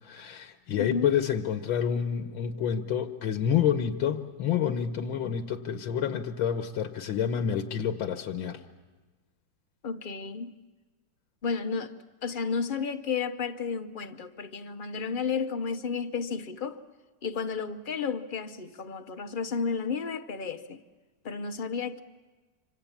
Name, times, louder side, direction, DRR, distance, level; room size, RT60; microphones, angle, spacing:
voice 1, 0.0-8.6, left 8 dB, 85° left, 1.8 m, -28 dB
voice 2, 0.8-1.1 9.8-10.5 11.4-11.9 12.2-16.8 17.2-20.8 21.2-22.0, left 5 dB, 55° left, 0.5 m, -32 dB
26.0 x 26.0 x 7.2 m
omnidirectional pair, 2.1 m